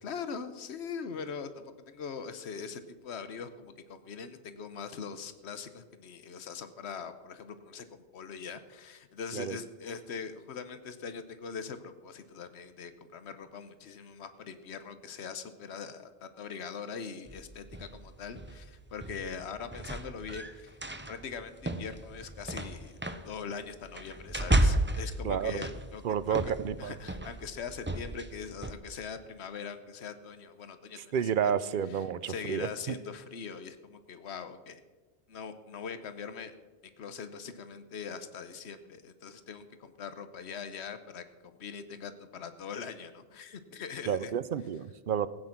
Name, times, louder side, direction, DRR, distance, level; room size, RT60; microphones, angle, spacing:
voice 1, 0.0-20.7 21.1-23.0 23.2-26.5 26.8-31.5 31.9-34.8 35.3-36.5 37.0-41.2 41.6-44.3, left 6 dB, 85° left, 11 dB, 1.1 m, -42 dB
sound 1, 17.3-28.7, right 1 dB, 15° right, 0.6 m, -33 dB
voice 2, 25.2-25.7 26.0-27.0 31.1-33.0 44.1-45.3, right 8 dB, 60° right, 16 dB, 0.7 m, -31 dB
16.0 x 9.0 x 5.9 m, 1.3 s
omnidirectional pair, 1.1 m